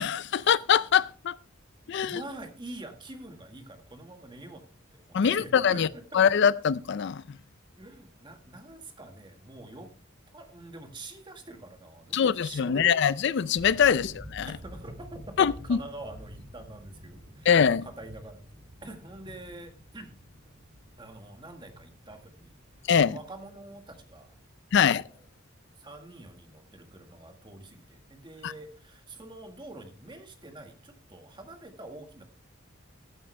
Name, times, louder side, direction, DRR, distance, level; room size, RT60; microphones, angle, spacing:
voice 1, 0.0-1.4 1.9-2.2 5.1-5.9 6.1-7.2 12.1-14.5 15.4-15.8 17.5-17.9 22.9-23.2 24.7-25.0 28.4-28.5, left 7 dB, 60° left, 0.4 m, -23 dB
voice 2, 2.0-4.6 4.9-6.2 7.8-9.9 10.3-12.9 14.5-17.5 17.8-18.5 18.8-20.1 21.0-22.6 23.1-24.4 24.7-25.2 25.8-32.2, right 2 dB, 25° right, 1.7 m, -46 dB
sound 1, 13.6-25.1, equal, 40° right, 1.9 m, -49 dB
15.0 x 8.6 x 3.3 m
head